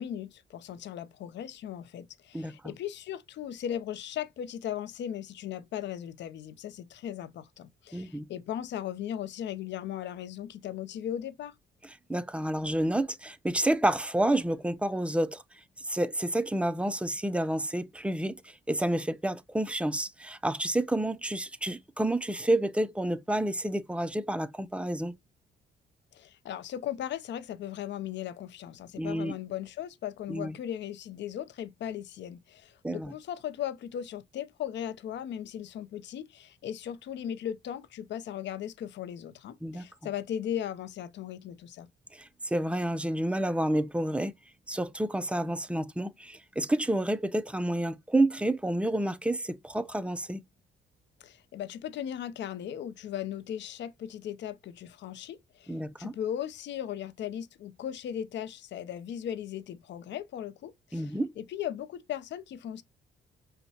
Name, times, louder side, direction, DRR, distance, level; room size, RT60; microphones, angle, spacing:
voice 1, 0.0-11.5 26.1-41.9 51.2-62.8, left 10 dB, 65° left, 0.5 m, -37 dB
voice 2, 7.9-8.3 12.1-15.4 15.8-25.1 29.0-29.3 30.3-30.6 32.8-33.1 39.6-39.8 42.1-44.3 44.7-50.4 55.7-56.1 60.9-61.3, right 1 dB, 5° right, 0.4 m, -29 dB
5.4 x 2.2 x 2.8 m
cardioid pair, 90°, 20 cm